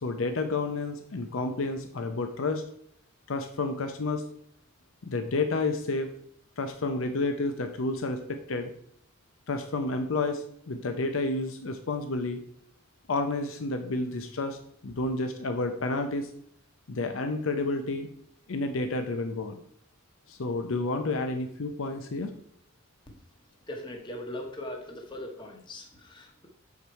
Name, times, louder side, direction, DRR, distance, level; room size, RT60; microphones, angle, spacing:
voice 1, 0.0-2.6 3.3-4.2 5.0-6.1 6.6-8.7 9.5-12.4 13.1-16.3 16.9-18.1 18.5-19.6 20.3-22.3, left 3 dB, 75° left, 6 dB, 0.6 m, -30 dB
voice 2, 23.7-26.5, left 1 dB, 20° left, 2 dB, 0.9 m, -40 dB
6.9 x 4.7 x 4.5 m, 0.68 s
head